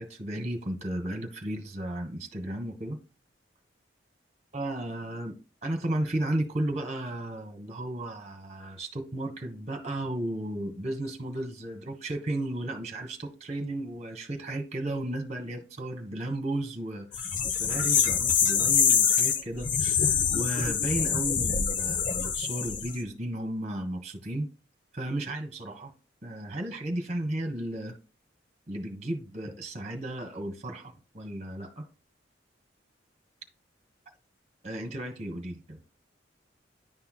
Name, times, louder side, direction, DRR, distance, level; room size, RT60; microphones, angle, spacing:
voice 1, 0.0-3.0 4.5-24.5 24.9-25.9 26.2-27.9 28.7-31.8 34.6-35.8, right 1 dB, 35° right, 1.5 m, -34 dB
sound 1, 17.1-22.9, left 7 dB, 45° left, 0.8 m, -25 dB
10.5 x 5.6 x 2.3 m
head